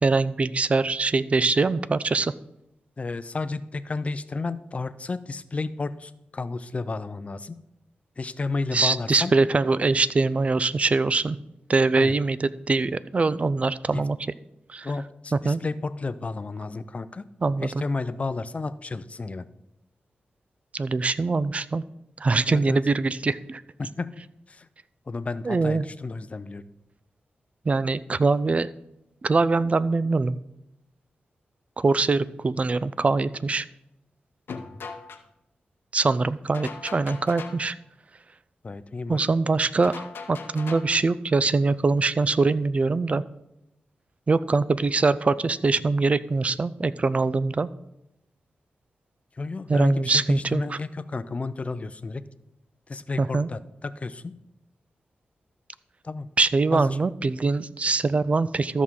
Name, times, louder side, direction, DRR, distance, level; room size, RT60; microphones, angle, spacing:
voice 1, 0.0-2.3 8.7-11.4 11.7-14.2 14.7-14.9 15.4-15.6 17.4-17.8 20.7-21.8 22.2-23.6 25.4-25.9 27.7-28.7 29.2-30.4 31.8-33.7 35.9-37.8 39.1-43.2 44.3-47.7 49.7-50.8 53.2-53.5 56.4-58.8, right 3 dB, 35° right, 17 dB, 0.4 m, -23 dB
voice 2, 3.0-7.6 8.2-9.3 12.0-12.1 13.9-14.0 14.8-17.2 17.6-19.5 22.5-22.8 23.8-24.1 24.5-24.7 25.1-26.6 38.6-39.2 49.4-52.2 52.9-54.3 56.0-56.3 56.7-57.0, left 3 dB, 35° left, 14 dB, 0.5 m, -32 dB
sound 1, 34.5-35.2 36.5-37.7 39.8-41.0, left 5 dB, 80° left, 0.8 m, -39 dB
13.5 x 6.1 x 3.7 m, 0.85 s
cardioid pair, 75°, 4 cm